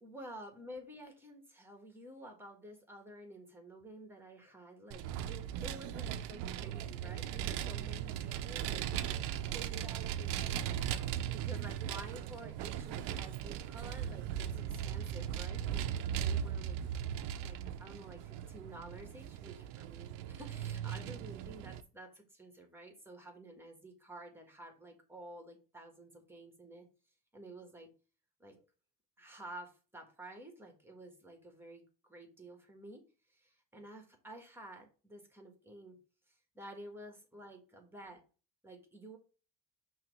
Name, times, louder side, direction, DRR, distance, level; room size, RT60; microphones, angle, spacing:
voice 1, 0.0-10.8 11.2-15.9 16.1-16.8 17.3-26.8 27.3-27.9 28.4-28.6 29.2-33.0 33.3-36.0 36.5-38.2 38.6-39.2, right 1 dB, 5° right, 3 dB, 1.6 m, -51 dB
Vehicle, 4.9-21.8, right 10 dB, 85° right, 0.7 m, -38 dB
5.7 x 3.1 x 5.3 m, 0.35 s
cardioid pair, 125°, 39 cm